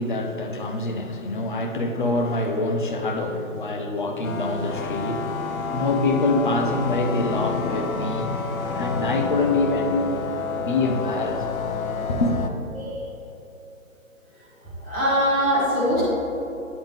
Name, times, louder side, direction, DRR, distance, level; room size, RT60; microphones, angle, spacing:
voice 1, 0.0-8.4 8.7-10.2 10.6-11.4 12.1-12.5, left 2 dB, 40° left, 0.5 m, -25 dB
sound 1, 4.2-12.5, left 5 dB, 85° left, 0.7 m, -29 dB
voice 2, 14.8-16.0, equal, 10° left, 1.0 m, -22 dB
9.0 x 3.6 x 3.5 m
hypercardioid pair, 155°, 41 cm